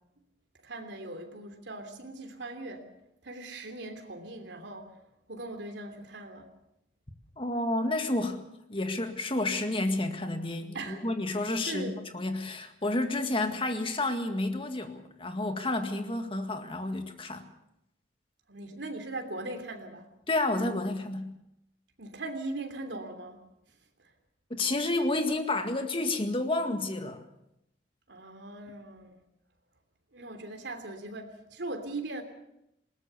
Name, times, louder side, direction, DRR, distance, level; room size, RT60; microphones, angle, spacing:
voice 1, 0.6-2.9 3.2-4.9 5.3-6.5 10.7-11.0 11.7-12.0 18.5-20.1 22.0-23.4 28.1-29.2 30.1-32.2, right 2 dB, 75° right, 5 dB, 3.1 m, -39 dB
voice 2, 7.4-8.4 8.7-17.4 20.3-21.3 24.5-27.2, left 2 dB, 30° left, 7 dB, 1.9 m, -30 dB
20.5 x 19.0 x 6.9 m, 0.82 s
head